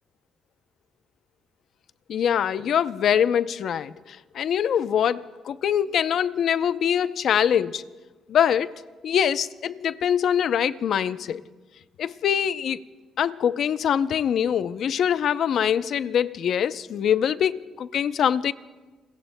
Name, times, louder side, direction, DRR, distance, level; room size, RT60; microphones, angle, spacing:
voice 1, 2.1-7.8 8.3-8.7 9.0-11.4 12.0-12.8 13.2-18.5, left 8 dB, 65° left, 0.6 m, -23 dB
29.0 x 22.0 x 2.2 m
cardioid pair, 90°, 0 cm